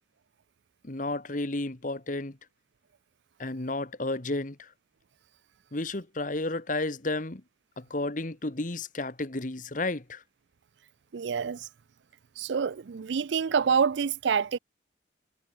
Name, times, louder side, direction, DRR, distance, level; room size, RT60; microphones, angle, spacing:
voice 1, 0.8-2.4 3.4-4.7 5.7-7.4 7.8-10.2, left 2 dB, 45° left, 1.4 m, -32 dB
voice 2, 11.1-11.7 12.4-14.6, right 6 dB, 70° right, 0.4 m, -27 dB
head